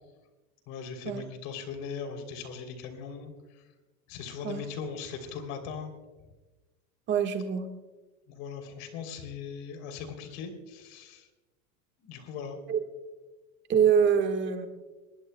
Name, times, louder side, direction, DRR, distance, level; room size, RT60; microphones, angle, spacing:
voice 1, 0.7-3.7 4.1-5.9 8.3-11.3 12.0-12.6, left 6 dB, 45° left, 6 dB, 3.2 m, -39 dB
voice 2, 7.1-7.7 12.7-12.8 13.7-14.7, right 7 dB, 25° right, 5 dB, 1.4 m, -24 dB
23.5 x 20.5 x 2.2 m, 1.2 s
supercardioid pair, 155°, 44 cm